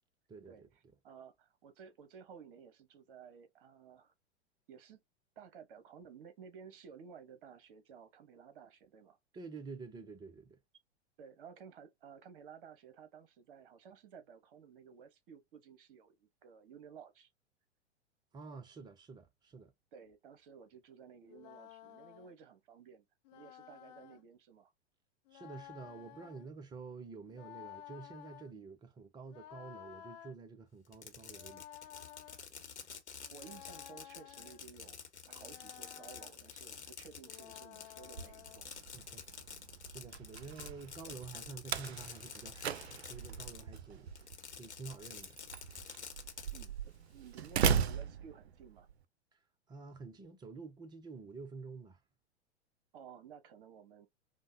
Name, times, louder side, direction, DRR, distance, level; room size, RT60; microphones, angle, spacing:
voice 1, 0.3-0.7 9.3-10.6 18.3-19.7 25.3-31.6 38.9-39.2 39.9-44.3 44.6-45.4 49.3-49.4 49.7-52.0, right 4 dB, 10° right, 0.5 m, -49 dB
voice 2, 1.0-4.1 4.7-5.0 5.4-9.2 11.2-17.3 19.9-23.0 23.3-24.7 33.3-35.0 35.3-38.7 40.4-40.5 41.0-41.2 46.5-46.8 47.1-48.9 52.9-54.1, right 7 dB, 50° right, 1.0 m, -55 dB
sound 1, 21.3-22.3 23.2-24.2 25.3-26.5 27.3-28.5 29.3-30.3 31.3-32.4 33.3-34.6 35.3-36.3 37.2-38.7, left 12 dB, 40° left, 0.6 m, -53 dB
Fireworks, 30.8-43.8 44.1-46.7, left 6 dB, 75° left, 1.1 m, -49 dB
Slam, 38.0-48.9, right 7 dB, 65° right, 0.5 m, -38 dB
5.1 x 2.2 x 2.6 m
figure-of-eight pair, 100°, 34 cm